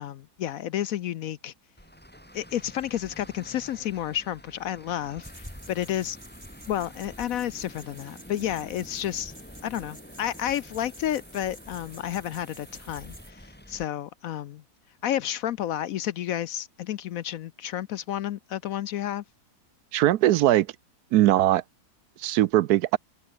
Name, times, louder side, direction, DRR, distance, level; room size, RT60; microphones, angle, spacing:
voice 1, 0.0-1.5 2.3-6.2 6.7-9.3 9.6-14.6 15.0-19.2, left 11 dB, 65° left, 0.9 m, -31 dB
Traffic noise roadway noise, 1.8-13.9, equal, 5° left, 4.2 m, -47 dB
sound 1, 5.2-13.3, right 1 dB, 20° right, 8.1 m, -50 dB
voice 2, 19.9-20.7 21.1-21.6 22.2-23.0, right 14 dB, 75° right, 1.1 m, -20 dB
open air
omnidirectional pair, 1.8 m